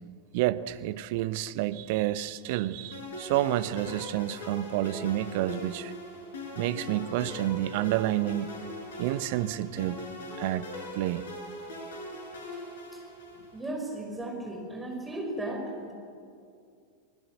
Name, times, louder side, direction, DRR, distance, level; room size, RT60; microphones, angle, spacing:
voice 1, 0.3-5.9 6.6-8.5 9.0-10.0 10.4-11.2, right 14 dB, 50° right, 15 dB, 0.8 m, -29 dB
sound 1, 2.9-13.6, left 1 dB, 60° left, 5.8 m, -41 dB
voice 2, 13.5-15.9, right 1 dB, 10° right, 1 dB, 5.4 m, -35 dB
29.5 x 20.5 x 7.7 m, 2.4 s
figure-of-eight pair, 90°, 0 cm